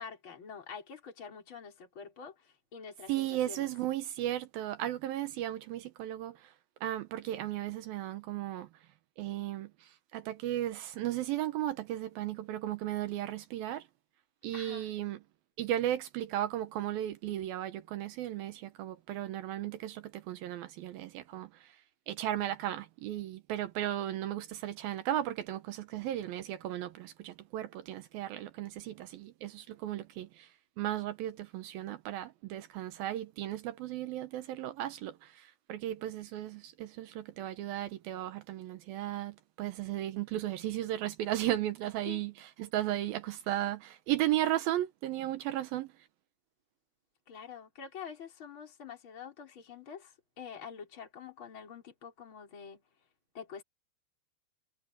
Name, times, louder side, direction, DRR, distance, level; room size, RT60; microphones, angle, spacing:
voice 1, 0.0-3.7 14.5-14.9 42.1-42.2 47.3-52.8 53.3-53.6, left 6 dB, 25° left, 5.4 m, -46 dB
voice 2, 3.1-6.3 6.8-8.7 9.2-9.7 10.1-13.8 14.4-15.2 15.6-21.5 22.1-30.3 30.8-35.1 35.7-45.9, right 13 dB, 75° right, 2.2 m, -35 dB
omnidirectional pair, 5.2 m